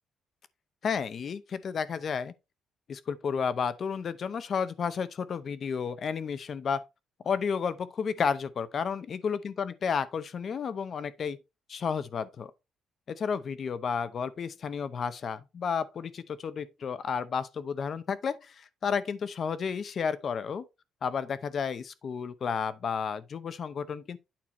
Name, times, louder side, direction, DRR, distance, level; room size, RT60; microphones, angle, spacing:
voice 1, 0.8-2.3 2.9-6.8 7.2-11.4 11.7-12.5 13.1-20.6 21.0-24.2, left 6 dB, 45° left, 0.7 m, -32 dB
8.7 x 4.2 x 4.3 m
cardioid pair, 130°, 0 cm